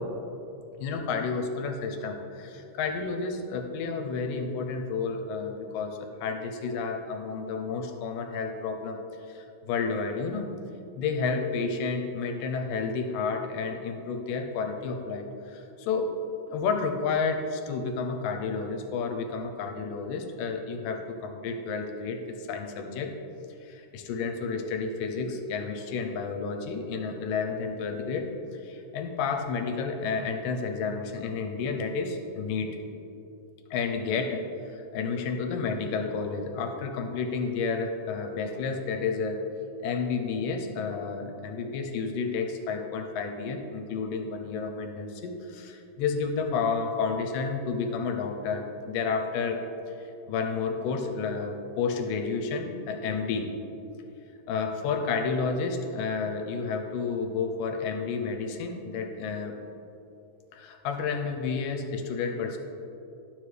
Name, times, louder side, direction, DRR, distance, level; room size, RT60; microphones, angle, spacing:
voice 1, 0.8-9.0 9.3-10.5 11.0-16.1 16.5-23.1 23.6-28.3 28.6-32.7 33.7-39.4 39.8-49.6 50.3-53.5 54.5-59.6 60.5-62.6, left 5 dB, 80° left, 5 dB, 2.3 m, -31 dB
11.5 x 7.3 x 3.3 m, 2.8 s
omnidirectional pair, 4.0 m